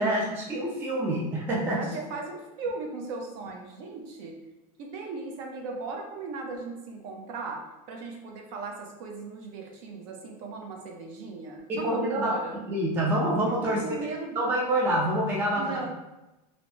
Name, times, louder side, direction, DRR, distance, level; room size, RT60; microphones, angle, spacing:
voice 1, 0.0-1.8 11.7-12.3 12.7-13.8 14.4-15.9, right 1 dB, 10° right, -3 dB, 0.3 m, -26 dB
voice 2, 1.8-4.4 4.8-7.6 7.9-12.6 13.6-14.4 15.6-15.9, right 3 dB, 55° right, 1 dB, 0.6 m, -37 dB
3.2 x 2.0 x 2.6 m, 1.0 s
supercardioid pair, 155°, 21 cm